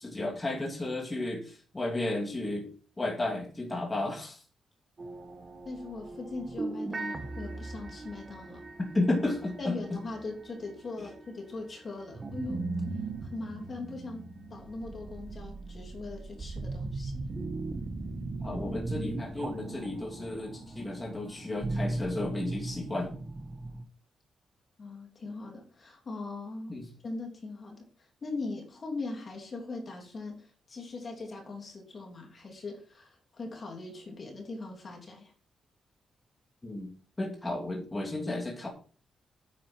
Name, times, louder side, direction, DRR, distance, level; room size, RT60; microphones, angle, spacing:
voice 1, 0.0-2.7 3.0-4.4 8.8-10.0 18.4-23.1 26.7-26.9 36.6-36.9 37.2-38.7, left 2 dB, 15° left, 2.8 m, -33 dB
sound 1, 5.0-11.4 12.0-23.8, right 2 dB, 30° right, 1.4 m, -38 dB
voice 2, 5.6-8.6 9.6-12.7 13.2-17.3 24.8-26.7 27.0-35.3, left 3 dB, 40° left, 3.2 m, -40 dB
9.6 x 8.8 x 4.5 m
wide cardioid pair, 145°, 0 cm